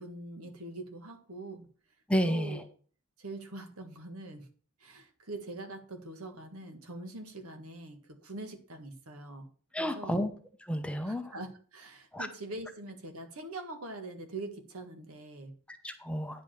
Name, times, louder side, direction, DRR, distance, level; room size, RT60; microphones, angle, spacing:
voice 1, 0.0-1.7 2.2-2.7 3.2-4.5 4.8-9.5 9.8-10.2 11.0-15.5, right 2 dB, 85° right, 6 dB, 1.6 m, -43 dB
voice 2, 2.1-2.6 9.7-10.3 10.7-11.3 12.1-12.3 15.7-16.4, equal, 5° left, 7 dB, 0.8 m, -31 dB
9.6 x 5.2 x 5.8 m, 0.42 s
head